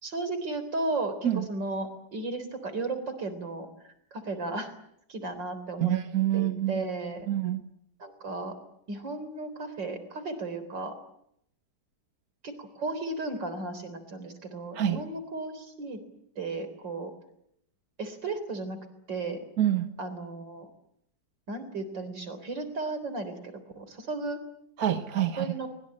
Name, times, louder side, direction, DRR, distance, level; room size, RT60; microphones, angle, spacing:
voice 1, 0.0-4.7 5.1-5.9 6.3-7.3 8.0-8.6 8.9-10.9 12.4-16.0 16.4-17.1 18.0-18.8 19.1-19.4 20.0-20.7 21.5-24.4 25.4-25.7, right 2 dB, 85° right, 11 dB, 4.5 m, -35 dB
voice 2, 5.8-6.8 7.3-7.6 14.7-15.0 19.6-19.9 24.8-25.5, right 12 dB, 60° right, 7 dB, 1.6 m, -26 dB
24.0 x 21.5 x 8.7 m, 0.75 s
omnidirectional pair, 1.9 m